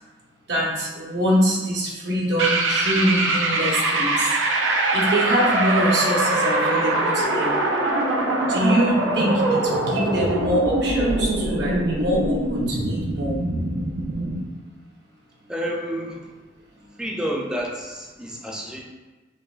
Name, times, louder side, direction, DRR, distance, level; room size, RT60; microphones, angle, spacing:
voice 1, 0.5-4.3 4.9-7.5 8.5-13.3, equal, 65° right, -3 dB, 0.8 m, -24 dB
sound 1, 2.4-14.5, right 2 dB, 85° right, 0.5 m, -23 dB
voice 2, 15.5-16.4 17.0-18.8, equal, 5° right, -1 dB, 0.4 m, -30 dB
5.5 x 2.0 x 2.4 m, 1.2 s
head